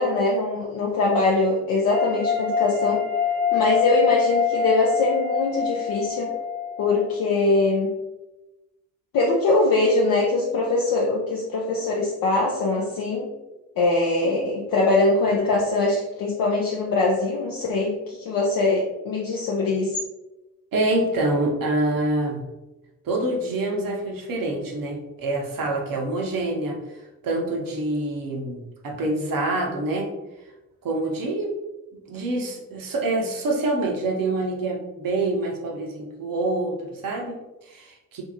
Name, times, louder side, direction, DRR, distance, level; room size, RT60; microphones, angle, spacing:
voice 1, 0.0-3.0 3.5-6.3 6.8-7.9 9.1-13.3 13.8-20.0, left 2 dB, 50° left, -3 dB, 0.6 m, -22 dB
sound 1, 1.9-7.1, left 7 dB, 5° left, 0.7 m, -25 dB
voice 2, 20.7-22.4 23.0-27.0 27.2-30.1 30.8-31.5 32.1-38.2, right 2 dB, 50° right, 0 dB, 0.8 m, -26 dB
2.6 x 2.3 x 2.8 m, 1.0 s
hypercardioid pair, 40°, 44 cm